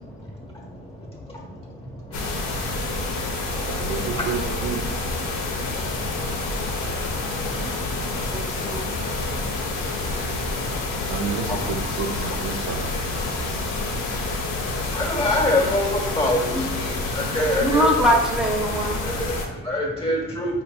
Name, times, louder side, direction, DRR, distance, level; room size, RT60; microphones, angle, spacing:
voice 1, 0.0-3.8 5.3-11.1 11.5-11.6 13.2-17.8 19.0-20.6, left 1 dB, 20° left, -2 dB, 1.4 m, -29 dB
sound 1, 2.1-19.5, left 2 dB, 75° left, 0.8 m, -28 dB
voice 2, 3.7-4.8 11.1-12.9, right 7 dB, 80° right, 3 dB, 0.5 m, -30 dB
voice 3, 8.3-8.9 17.6-19.0, equal, ahead, -1 dB, 0.7 m, -22 dB
5.3 x 2.9 x 2.2 m, 1.0 s
cardioid pair, 90°, 30 cm